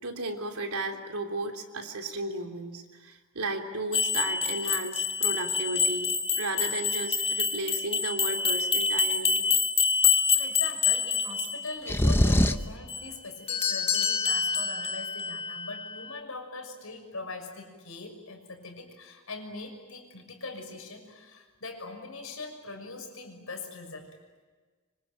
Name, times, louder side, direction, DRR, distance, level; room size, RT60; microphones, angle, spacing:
voice 1, 0.0-9.4, right 2 dB, 85° right, 3 dB, 3.4 m, -34 dB
sound 1, 3.9-12.1 12.9-16.2, left 5 dB, 25° left, 1.9 m, -27 dB
voice 2, 10.3-24.1, left 3 dB, 70° left, 4 dB, 6.2 m, -41 dB
sound 2, 11.9-12.7, left 1 dB, 10° left, 0.9 m, -22 dB
26.0 x 25.0 x 9.0 m, 1.4 s
head